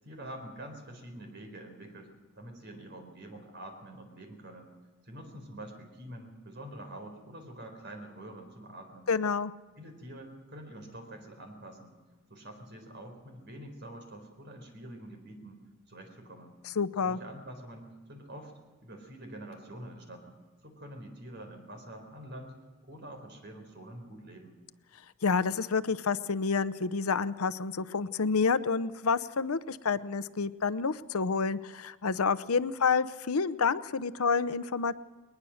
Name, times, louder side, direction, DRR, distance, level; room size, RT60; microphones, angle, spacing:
voice 1, 0.0-4.7 5.0-9.1 9.8-12.0 12.3-15.6 15.9-16.5 17.0-20.4 20.6-22.6 22.8-24.5, right 1 dB, 50° right, 5 dB, 4.2 m, -46 dB
voice 2, 9.1-9.5 16.8-17.2 25.2-34.9, left 5 dB, 90° left, 14 dB, 0.7 m, -29 dB
20.5 x 20.5 x 6.4 m, 1.3 s
head